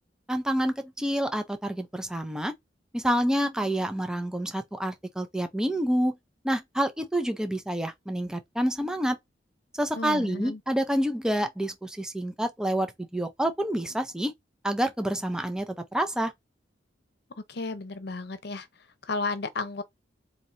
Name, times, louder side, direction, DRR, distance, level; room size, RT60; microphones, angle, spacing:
voice 1, 0.3-2.5 2.9-6.2 6.4-9.2 9.7-14.3 14.6-16.3, right 1 dB, 5° right, 0.5 m, -28 dB
voice 2, 9.9-10.6 17.5-18.7 19.0-19.8, left 3 dB, 60° left, 0.8 m, -33 dB
4.4 x 2.8 x 2.5 m
head